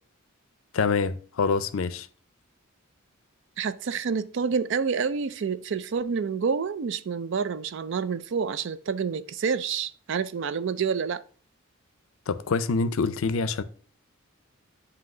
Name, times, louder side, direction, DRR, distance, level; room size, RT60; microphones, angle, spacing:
voice 1, 0.7-2.1 12.3-13.6, left 4 dB, 75° left, 0.5 m, -26 dB
voice 2, 3.6-11.2, right 6 dB, 60° right, 0.4 m, -28 dB
7.9 x 2.8 x 5.2 m
head